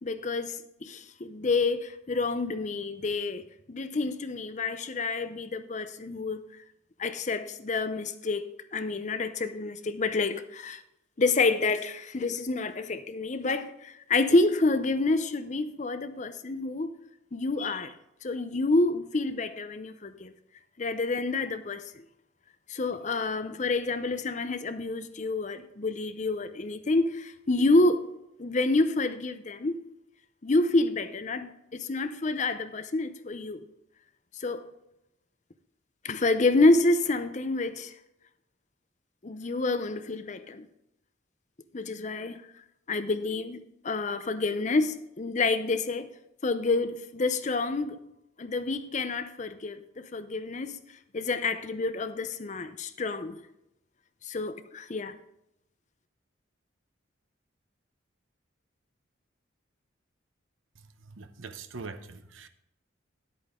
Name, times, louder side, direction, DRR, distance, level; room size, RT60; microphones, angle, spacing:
voice 1, 0.0-6.4 7.0-8.4 8.7-10.8 11.2-17.0 17.3-17.9 18.2-20.3 20.8-22.0 22.7-28.1 28.4-29.8 30.4-33.6 34.3-34.7 36.0-38.0 39.2-40.7 41.7-42.4 42.9-46.1 46.4-48.0 48.4-50.8 51.1-53.4 54.2-55.1, left 3 dB, 40° left, 0.6 m, -28 dB
voice 2, 61.0-62.5, right 4 dB, 85° right, 0.8 m, -43 dB
10.5 x 8.4 x 3.7 m
head